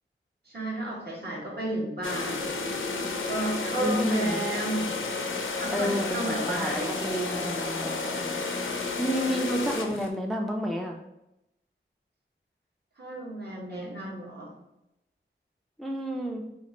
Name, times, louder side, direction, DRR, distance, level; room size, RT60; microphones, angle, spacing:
voice 1, 0.4-2.5 3.1-4.9 5.6-7.5 13.0-14.5, right 1 dB, 55° right, -4 dB, 1.3 m, -32 dB
sound 1, 2.0-10.1, left 3 dB, 75° left, 0.5 m, -31 dB
voice 2, 3.8-4.4 5.7-8.4 9.0-11.0 15.8-16.4, equal, ahead, 2 dB, 0.4 m, -30 dB
2.9 x 2.4 x 4.1 m, 0.88 s
wide cardioid pair, 45°, 21 cm